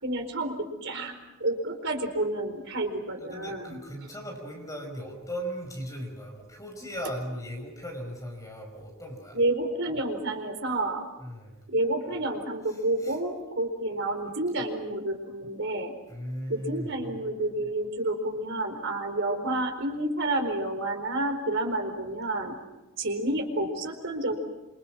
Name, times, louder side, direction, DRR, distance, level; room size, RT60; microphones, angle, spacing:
voice 1, 0.0-3.8 9.3-11.0 11.7-16.0 16.5-22.6 23.0-24.4, right 2 dB, 60° right, 5 dB, 4.4 m, -29 dB
voice 2, 3.2-9.4 11.2-11.6 13.0-13.2 16.1-17.0, equal, 15° left, 2 dB, 5.1 m, -37 dB
27.0 x 26.0 x 6.2 m, 1.0 s
head